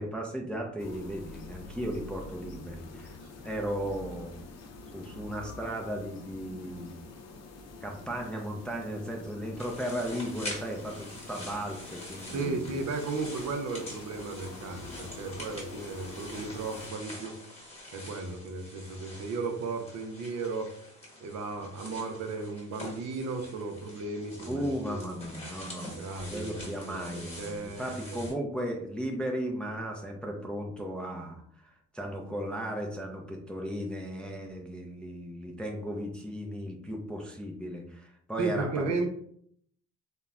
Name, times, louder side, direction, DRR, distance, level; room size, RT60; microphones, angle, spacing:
voice 1, 0.0-3.2 3.4-4.3 4.9-6.9 7.8-12.8 24.5-25.9 26.3-39.1, equal, 5° left, 0 dB, 0.4 m, -36 dB
sound 1, 0.8-16.9, left 3 dB, 60° left, 0.6 m, -47 dB
sound 2, 9.6-28.3, left 1 dB, 20° left, 1.1 m, -45 dB
voice 2, 12.3-17.3 17.9-20.7 21.2-25.1 25.9-28.2 38.4-39.1, right 3 dB, 60° right, 5 dB, 0.6 m, -35 dB
3.0 x 2.1 x 2.4 m, 0.65 s
cardioid pair, 90°, 30 cm